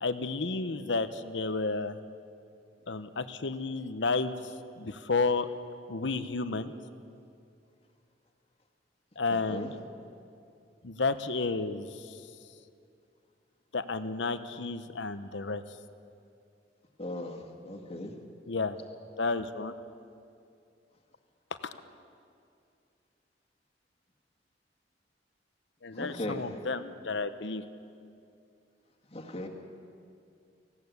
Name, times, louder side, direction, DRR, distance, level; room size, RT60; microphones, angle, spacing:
voice 1, 0.0-2.0 2.9-4.3 4.8-5.5 5.9-6.7 9.2-9.8 10.8-12.2 13.7-15.6 18.5-18.8 19.2-19.7 21.6-21.7 25.8-27.6, left 3 dB, 80° left, 12 dB, 0.9 m, -31 dB
voice 2, 17.0-17.4 17.7-18.1 26.0-26.4 29.1-29.5, left 1 dB, 35° left, 2 dB, 2.0 m, -37 dB
19.5 x 16.5 x 8.2 m, 2.5 s
head